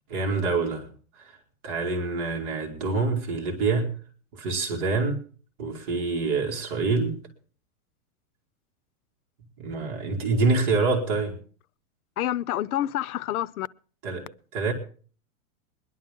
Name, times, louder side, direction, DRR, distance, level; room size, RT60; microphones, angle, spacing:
voice 1, 0.1-0.9 1.2-1.3 1.6-3.9 4.3-5.2 5.6-7.2 9.6-11.4 14.0-14.3 14.5-14.7, right 3 dB, 35° right, 2.4 m, -26 dB
voice 2, 12.2-13.7, left 12 dB, 85° left, 0.7 m, -28 dB
21.5 x 11.0 x 3.7 m
supercardioid pair, 170°, 43 cm